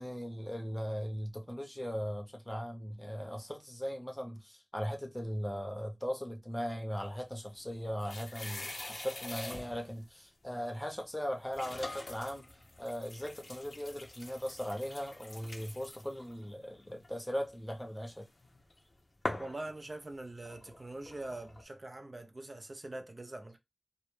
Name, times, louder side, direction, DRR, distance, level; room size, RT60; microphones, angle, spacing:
voice 1, 0.0-12.4 12.8-18.3, equal, 15° left, 0.6 m, -38 dB
sound 1, 7.4-10.0 10.8-10.9 11.5-18.8 19.2-21.6, left 2 dB, 60° left, 0.5 m, -45 dB
voice 2, 19.4-23.6, right 2 dB, 50° right, 0.4 m, -43 dB
2.1 x 2.0 x 3.0 m
cardioid pair, 45°, 0 cm